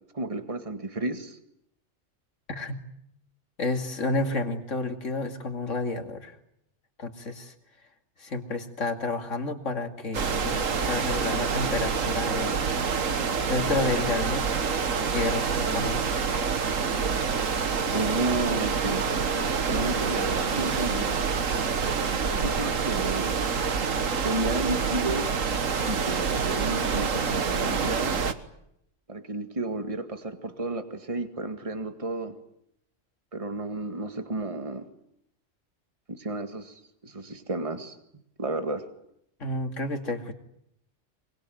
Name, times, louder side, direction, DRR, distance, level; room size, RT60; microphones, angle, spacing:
voice 1, 0.1-1.4 17.9-19.1 19.7-21.2 22.3-23.4 24.2-25.3 25.9-28.2 29.1-32.4 33.3-34.8 36.1-38.0 38.4-38.9, right 2 dB, 25° right, 8 dB, 2.0 m, -32 dB
voice 2, 3.6-6.3 7.0-7.5 8.2-10.6 10.9-12.7 13.5-14.6 15.1-16.3 39.4-40.3, left 3 dB, 70° left, 5 dB, 2.9 m, -30 dB
sound 1, 10.1-28.3, right 5 dB, 85° right, 1.9 m, -27 dB
24.0 x 24.0 x 9.2 m, 0.76 s
omnidirectional pair, 1.3 m